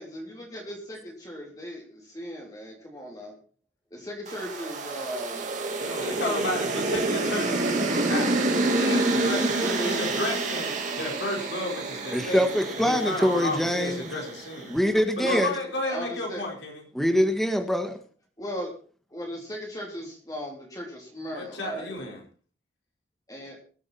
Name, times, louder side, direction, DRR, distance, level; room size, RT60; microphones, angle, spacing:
voice 1, 0.0-3.3 3.9-5.5 5.9-7.1 9.6-10.0 10.9-11.0 15.2-15.4 15.9-16.4 18.4-18.7 19.1-22.0 23.3-23.6, equal, 20° left, -1 dB, 3.4 m, -37 dB
sound 1, 4.3-14.6, right 2 dB, 40° right, 2.6 m, -28 dB
voice 2, 5.8-8.4 8.8-10.7 11.0-12.4 12.8-14.7 15.2-16.8 21.3-22.2, left 2 dB, 75° left, -1 dB, 4.6 m, -32 dB
voice 3, 12.1-14.0 14.7-15.5 16.9-18.0, equal, ahead, 6 dB, 1.5 m, -24 dB
22.0 x 8.5 x 4.2 m, 0.40 s
head